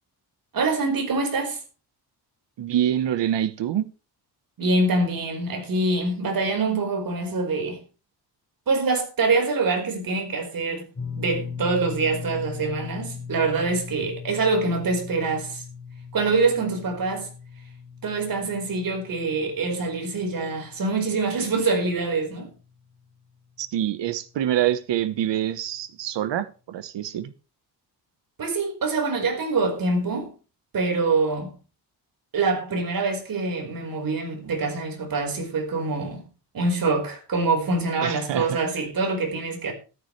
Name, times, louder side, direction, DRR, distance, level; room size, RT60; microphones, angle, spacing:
voice 1, 0.5-1.6 4.6-7.8 8.7-10.9 11.2-15.6 16.1-17.3 18.0-22.5 28.4-30.3 30.7-31.5 32.3-36.2 36.5-39.7, right 3 dB, 55° right, 4.8 m, -25 dB
voice 2, 2.6-3.9 23.6-27.3 38.0-38.6, right 11 dB, 80° right, 1.2 m, -26 dB
sound 1, 10.9-23.2 23.4-23.7 25.4-25.5, left 6 dB, 25° left, 5.7 m, -39 dB
14.0 x 13.0 x 3.3 m
wide cardioid pair, 150°, 42 cm